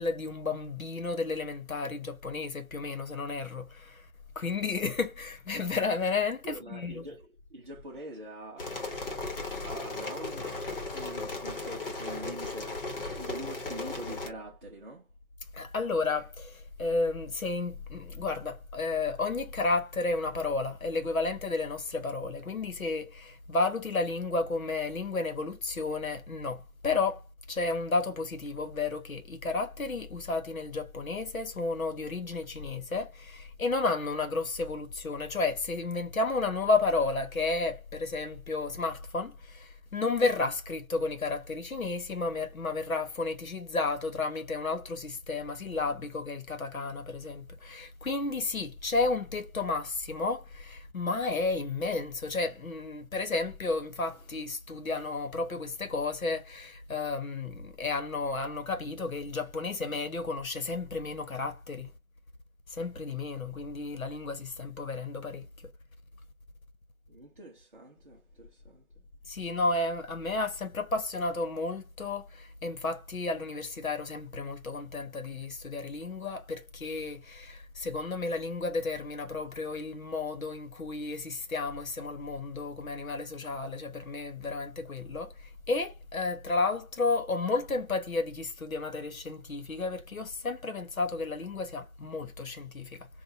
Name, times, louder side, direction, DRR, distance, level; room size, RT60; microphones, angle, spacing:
voice 1, 0.0-4.1 4.3-7.1 15.5-61.9 62.7-65.4 69.3-93.1, left 3 dB, 70° left, 1.1 m, -32 dB
voice 2, 6.4-8.7 9.6-10.5 10.9-12.9 13.2-15.1 67.1-68.9, right 1 dB, 35° right, 0.7 m, -44 dB
sound 1, 8.6-14.3, left 2 dB, 40° left, 1.1 m, -36 dB
4.2 x 2.5 x 2.6 m
figure-of-eight pair, 160°, 43 cm